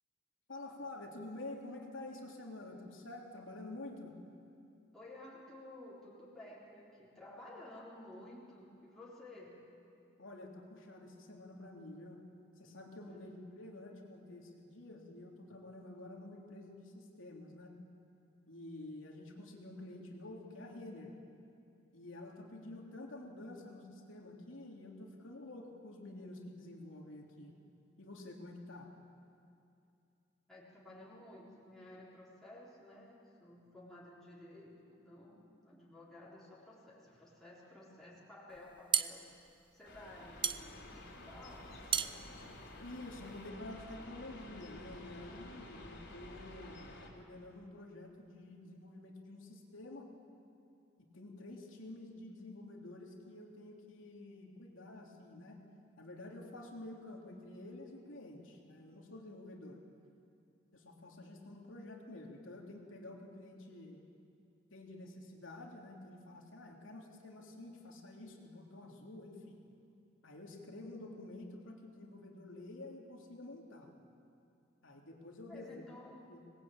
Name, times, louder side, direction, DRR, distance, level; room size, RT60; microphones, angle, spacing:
voice 1, 0.5-4.1 10.2-12.2 12.6-17.7 18.5-21.1 21.9-27.5 28.0-28.9 42.8-46.9 47.1-50.1 51.1-55.6 56.0-59.8 60.7-64.0 64.7-69.5 70.2-73.9 74.8-75.9 76.3-76.4, left 2 dB, 90° left, 0 dB, 3.3 m, -49 dB
voice 2, 4.9-9.6 13.0-13.3 30.5-39.3 39.7-42.4 75.5-76.3, left 1 dB, ahead, -7 dB, 4.2 m, -54 dB
sound 1, 38.5-43.5, right 8 dB, 25° right, 0.6 m, -37 dB
sound 2, 39.8-47.1, left 1 dB, 60° left, 3.6 m, -51 dB
25.0 x 20.0 x 8.9 m, 2.6 s
head